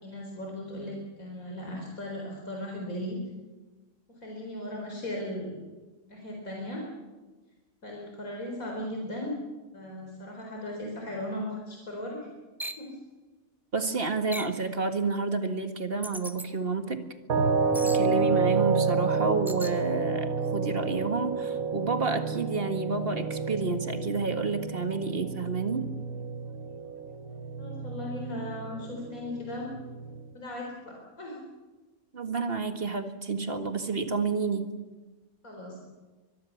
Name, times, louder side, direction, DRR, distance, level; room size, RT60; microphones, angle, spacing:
voice 1, 0.0-3.2 4.2-5.6 6.1-6.8 7.8-9.4 9.7-12.3 12.8-13.0 27.6-29.7 30.3-31.4 35.4-35.8, left 1 dB, 75° left, 0 dB, 4.6 m, -37 dB
sound 1, 12.6-12.9 14.3-14.6 16.0-16.5 17.7-18.0 19.5-19.8, right 1 dB, ahead, 0.9 m, -38 dB
voice 2, 13.7-17.0 17.8-25.9 32.1-34.7, right 4 dB, 45° right, 7 dB, 2.0 m, -30 dB
sound 2, 17.3-30.3, right 5 dB, 85° right, 1.8 m, -30 dB
23.5 x 22.5 x 7.2 m, 1.2 s
omnidirectional pair, 1.5 m